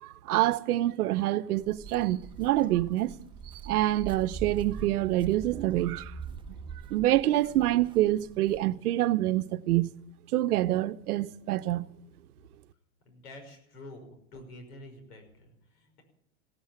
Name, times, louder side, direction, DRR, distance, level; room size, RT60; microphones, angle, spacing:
voice 1, 0.0-3.1 3.6-6.1 6.9-9.9 10.3-11.9, right 15 dB, 85° right, 0.9 m, -26 dB
Walk footsteps, 1.5-8.6, right 6 dB, 10° right, 1.2 m, -43 dB
voice 2, 13.0-14.1 14.3-16.0, left 1 dB, 85° left, 5.9 m, -48 dB
17.0 x 9.7 x 8.7 m
supercardioid pair, 125°, 44 cm